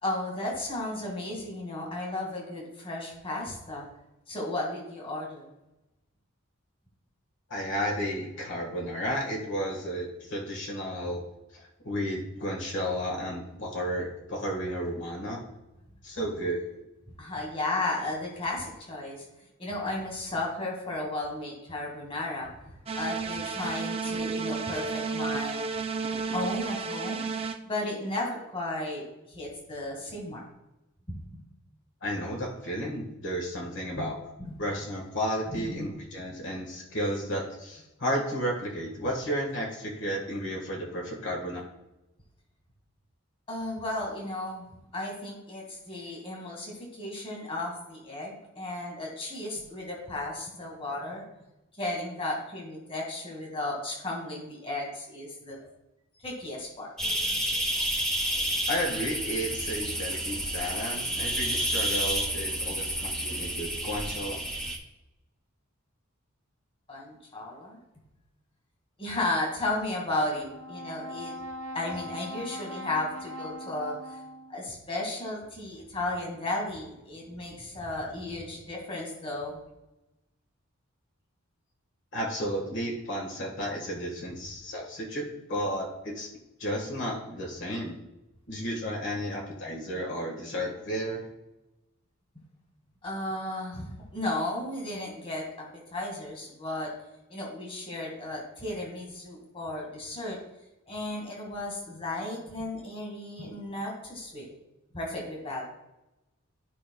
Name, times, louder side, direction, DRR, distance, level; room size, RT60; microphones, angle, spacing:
voice 1, 0.0-3.9 4.3-5.5 14.8-15.0 17.2-19.3 19.6-22.5 22.9-25.7 26.3-27.2 27.6-30.4 31.1-31.4 33.9-34.1 34.4-34.5 35.5-36.0 43.5-44.6 44.9-51.2 51.8-55.6 56.2-56.9 62.7-62.8 66.9-67.8 69.0-71.3 71.7-74.2 74.5-79.6 93.0-96.9 97.3-100.4 100.9-104.5 104.9-105.7, left 2 dB, 25° left, -1 dB, 2.0 m, -34 dB
voice 2, 7.5-11.2 11.5-15.5 16.0-16.8 32.0-34.1 34.6-41.6 58.7-64.5 82.1-86.3 86.6-87.9 88.5-91.2, equal, 60° left, -1 dB, 1.6 m, -33 dB
sound 1, 22.9-27.6, right 4 dB, 30° right, 0.5 m, -32 dB
sound 2, 57.0-64.8, right 1 dB, 5° left, 1.0 m, -30 dB
Brass instrument, 70.3-74.7, equal, 75° right, 0.6 m, -40 dB
13.5 x 5.1 x 2.3 m, 0.94 s
head